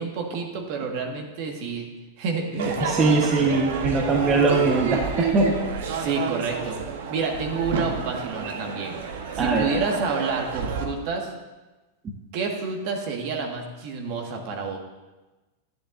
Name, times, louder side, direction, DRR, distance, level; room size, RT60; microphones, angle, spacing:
voice 1, 0.0-1.9 2.2-3.0 5.9-6.8 7.1-9.0 9.3-11.3 12.3-14.8, right 4 dB, 55° right, 2 dB, 1.6 m, -29 dB
Crowd / Fireworks, 2.6-10.8, right 6 dB, 70° right, 1.1 m, -29 dB
voice 2, 2.8-5.6 9.4-9.8, right 3 dB, 30° right, 1 dB, 1.1 m, -21 dB
11.0 x 10.0 x 2.6 m, 1.1 s
hypercardioid pair, 105°, 0 cm